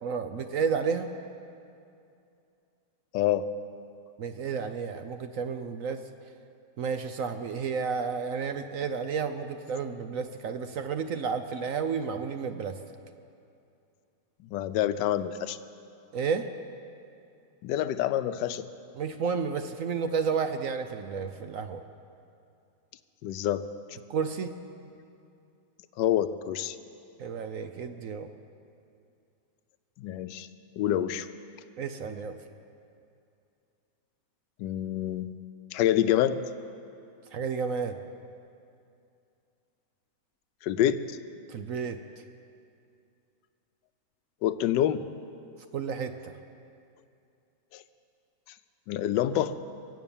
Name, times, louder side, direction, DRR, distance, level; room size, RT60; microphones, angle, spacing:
voice 1, 0.0-1.1 4.2-6.0 6.8-12.8 16.1-16.5 19.0-21.8 24.1-24.6 27.2-28.3 31.8-32.4 37.3-38.0 41.5-42.0 45.7-46.3, right 6 dB, 65° right, 8 dB, 0.8 m, -31 dB
voice 2, 3.1-3.5 14.5-15.6 17.6-18.7 23.2-23.7 26.0-26.8 30.0-30.5 30.8-31.3 34.6-35.3 35.7-36.4 40.6-41.1 44.4-45.1 47.7-47.8 48.9-49.6, left 11 dB, 80° left, 12 dB, 1.2 m, -27 dB
24.0 x 8.3 x 7.2 m, 2.6 s
omnidirectional pair, 2.0 m